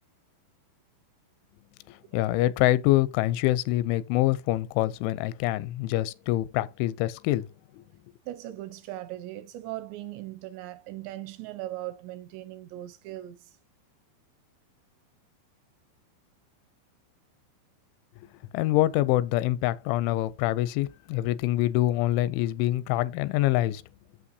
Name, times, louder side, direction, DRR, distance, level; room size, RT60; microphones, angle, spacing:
voice 1, 1.9-7.5 7.7-7.8 18.5-23.8, left 15 dB, 85° left, 3.0 m, -25 dB
voice 2, 8.3-13.5, right 15 dB, 80° right, 2.8 m, -39 dB
8.5 x 7.3 x 2.7 m
omnidirectional pair, 5.3 m